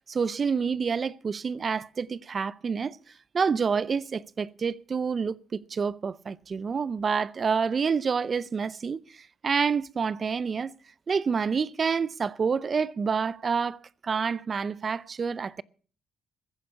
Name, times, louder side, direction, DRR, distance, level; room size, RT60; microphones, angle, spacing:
voice 1, 0.1-3.0 3.3-10.7 11.1-15.6, right 5 dB, 40° right, 0.6 m, -28 dB
15.0 x 9.5 x 6.8 m
cardioid pair, 90°, 0 cm